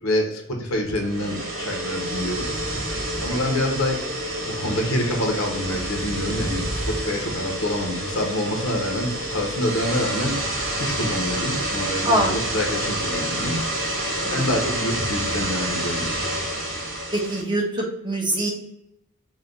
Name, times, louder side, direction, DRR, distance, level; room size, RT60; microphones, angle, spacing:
voice 1, 0.0-2.6 3.2-4.0 4.4-10.4 10.8-13.6 14.3-16.1, left 1 dB, 70° left, 1 dB, 1.2 m, -26 dB
sound 1, 0.9-17.4, right 1 dB, 65° right, 1.4 m, -28 dB
voice 2, 3.3-3.6 12.0-12.3 14.2-14.5 17.1-18.5, right 1 dB, 20° right, -1 dB, 1.0 m, -24 dB
5.0 x 2.6 x 3.9 m, 0.82 s
head